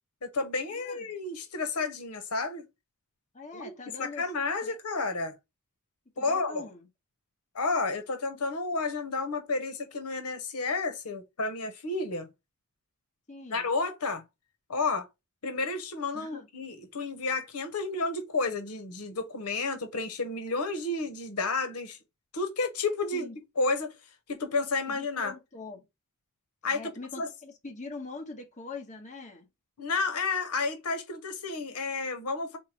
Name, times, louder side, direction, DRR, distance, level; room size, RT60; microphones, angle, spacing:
voice 1, 0.2-2.6 3.5-3.7 4.0-5.3 6.2-6.7 7.5-12.3 13.5-14.2 14.7-15.1 15.4-22.0 22.3-23.3 23.6-23.9 24.3-25.3 26.6-26.9 27.2-27.3 29.8-32.6, left 3 dB, 90° left, 0.9 m, -31 dB
voice 2, 0.7-1.1 3.3-4.3 4.6-4.8 6.2-6.9 13.3-13.7 16.1-16.5 23.1-23.4 24.9-25.8 26.7-29.5, left 3 dB, 35° left, 1.2 m, -43 dB
4.5 x 2.2 x 4.4 m
head